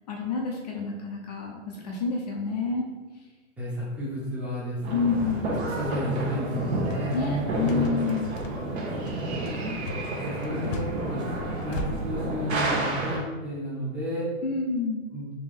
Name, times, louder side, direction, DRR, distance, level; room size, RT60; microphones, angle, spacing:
voice 1, 0.1-2.9 4.9-5.5 7.1-8.3 14.4-15.1, left 4 dB, 35° left, 0 dB, 0.5 m, -28 dB
voice 2, 3.6-5.3 5.6-7.9 10.2-11.2 11.6-14.3 15.1-15.3, equal, 5° right, -8 dB, 0.7 m, -32 dB
sound 1, 4.8-13.2, right 2 dB, 60° right, 1.0 m, -30 dB
sound 2, 6.8-11.9, left 3 dB, 85° left, 0.6 m, -38 dB
3.6 x 3.0 x 3.3 m, 1.3 s
hypercardioid pair, 155°, 38 cm